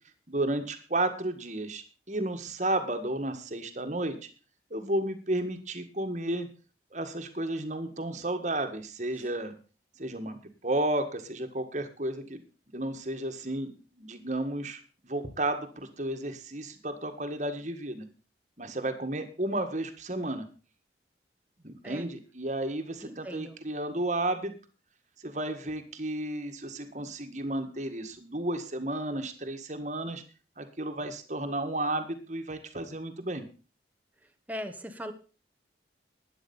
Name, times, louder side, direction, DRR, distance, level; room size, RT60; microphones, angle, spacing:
voice 1, 0.3-4.2 4.7-6.5 6.9-9.5 10.0-12.4 12.7-14.8 15.1-18.1 18.6-20.5 21.6-24.5 25.2-30.2 30.6-33.4, right 1 dB, 40° right, 7 dB, 1.8 m, -32 dB
voice 2, 23.0-23.6 34.5-35.1, equal, 10° right, 6 dB, 1.2 m, -39 dB
12.5 x 10.0 x 5.5 m, 0.36 s
head